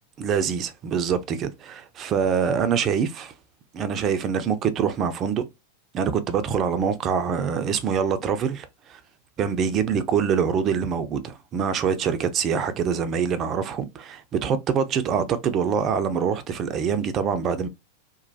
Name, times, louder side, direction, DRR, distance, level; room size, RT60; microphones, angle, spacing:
voice 1, 0.2-3.3 3.7-5.4 5.9-9.0 9.4-17.7, right 7 dB, 30° right, 0.4 m, -25 dB
3.0 x 2.1 x 2.6 m
figure-of-eight pair, 90°, 0 cm